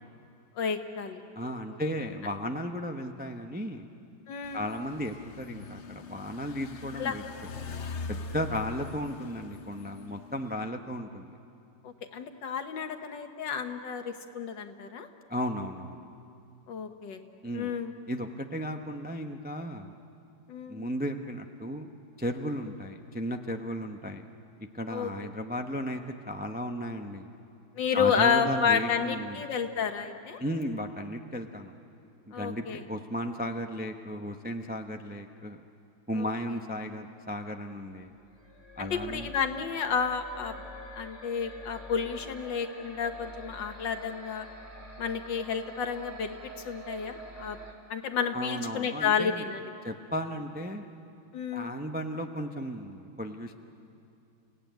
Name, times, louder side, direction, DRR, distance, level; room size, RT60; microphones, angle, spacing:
voice 1, 0.6-1.2 4.3-4.7 7.0-7.2 11.8-15.1 16.7-17.2 17.5-17.9 20.5-20.9 24.9-25.1 27.8-30.4 32.3-32.8 36.2-36.3 38.8-40.6 41.0-44.5 45.0-46.4 46.7-47.6 47.9-49.7 51.3-51.7, left 6 dB, 70° left, 6 dB, 1.9 m, -31 dB
voice 2, 1.3-3.9 4.5-7.2 8.1-11.3 15.3-16.1 17.4-17.7 18.1-19.9 20.7-21.9 22.2-24.3 24.7-27.3 27.9-29.4 30.4-31.7 32.3-35.6 36.1-38.1 38.8-39.3 48.3-49.5 49.8-50.9 51.5-53.6, equal, 10° right, 4 dB, 0.4 m, -35 dB
sound 1, 4.4-10.7, left 4 dB, 50° left, 0.9 m, -42 dB
sound 2, 38.2-47.7, right 1 dB, 35° right, 2.9 m, -46 dB
30.0 x 17.5 x 9.3 m, 2.6 s
omnidirectional pair, 2.1 m